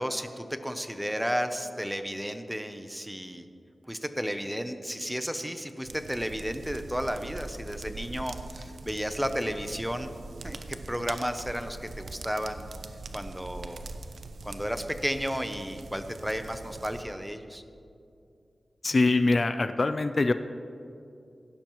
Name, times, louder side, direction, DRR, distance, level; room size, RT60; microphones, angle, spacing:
voice 1, 0.0-3.5 3.9-10.1 10.4-12.7 13.1-13.8 14.4-17.6, equal, 5° right, 8 dB, 0.7 m, -33 dB
sound 1, 5.8-17.0, right 3 dB, 80° right, 0.6 m, -42 dB
voice 2, 18.8-20.3, left 3 dB, 45° left, 10 dB, 0.4 m, -23 dB
16.0 x 11.5 x 3.1 m, 2.5 s
wide cardioid pair, 95°, 0 cm